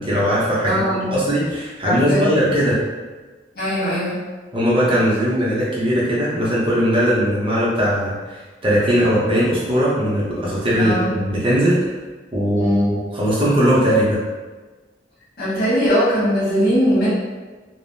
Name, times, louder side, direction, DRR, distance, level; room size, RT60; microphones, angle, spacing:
voice 1, 0.0-2.8 4.5-11.8 12.3-14.2, equal, 30° right, -7 dB, 0.6 m, -19 dB
voice 2, 0.6-1.1 1.8-2.4 3.5-4.2 10.8-11.1 12.6-12.9 15.4-17.1, equal, 55° left, -10 dB, 1.2 m, -20 dB
3.3 x 2.0 x 2.6 m, 1.3 s
head